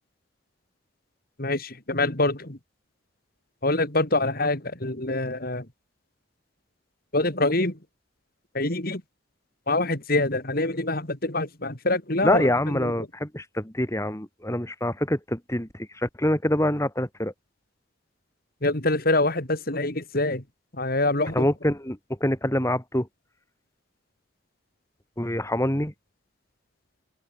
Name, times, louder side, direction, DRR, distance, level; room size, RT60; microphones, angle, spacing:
voice 1, 1.4-2.6 3.6-5.6 7.1-7.8 8.5-9.0 9.7-12.9 18.6-20.4 20.8-21.5, left 2 dB, 50° left, 3.3 m, -25 dB
voice 2, 12.2-17.3 21.3-23.1 25.2-25.9, left 1 dB, 15° left, 2.7 m, -25 dB
open air
head